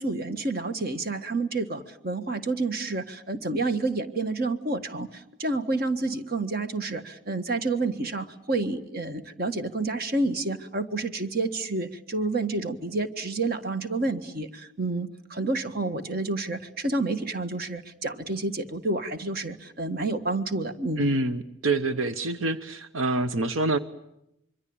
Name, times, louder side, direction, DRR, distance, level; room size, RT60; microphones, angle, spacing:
voice 1, 0.0-21.0, right 2 dB, 50° right, 8 dB, 1.6 m, -29 dB
voice 2, 21.0-23.8, right 2 dB, 85° right, 11 dB, 1.0 m, -26 dB
25.5 x 24.0 x 8.7 m, 0.82 s
head